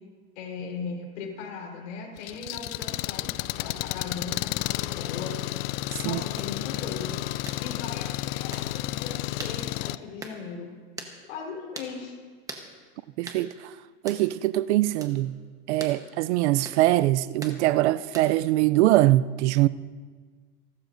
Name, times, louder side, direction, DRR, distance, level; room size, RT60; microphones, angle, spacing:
voice 1, 0.4-5.4 6.0-7.1 7.6-10.7 11.3-12.2, left 5 dB, 85° left, 4.4 m, -38 dB
Engine, 2.2-10.0, left 17 dB, 60° left, 0.4 m, -31 dB
sound 1, 6.4-6.5 7.4-7.6 8.5-8.7 9.4-9.6 10.2-10.4 11.0-11.2 11.7-11.9 12.5-12.7 13.3-13.4 14.1-14.2 15.0-15.2 15.8-16.0 16.6-16.8 17.4-17.6 18.1-18.4, right 3 dB, 10° right, 1.1 m, -40 dB
voice 2, 13.2-13.7 14.0-15.4 15.7-19.7, right 16 dB, 75° right, 0.5 m, -23 dB
28.0 x 13.0 x 2.7 m
supercardioid pair, 155°, 35 cm